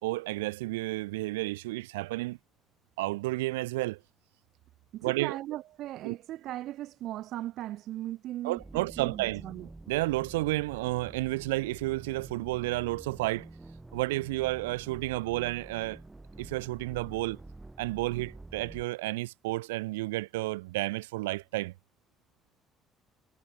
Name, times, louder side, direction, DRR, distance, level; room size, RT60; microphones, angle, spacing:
voice 1, 0.0-2.4 3.0-4.0 5.0-5.4 6.0-6.2 8.4-9.4 9.9-13.5 13.9-16.0 16.4-17.4 17.8-21.7, right 20 dB, 75° right, 1.1 m, -31 dB
voice 2, 4.9-9.7, right 14 dB, 60° right, 3.3 m, -38 dB
sound 1, 8.6-18.9, right 2 dB, 15° right, 6.2 m, -48 dB
figure-of-eight pair, 50°, 0 cm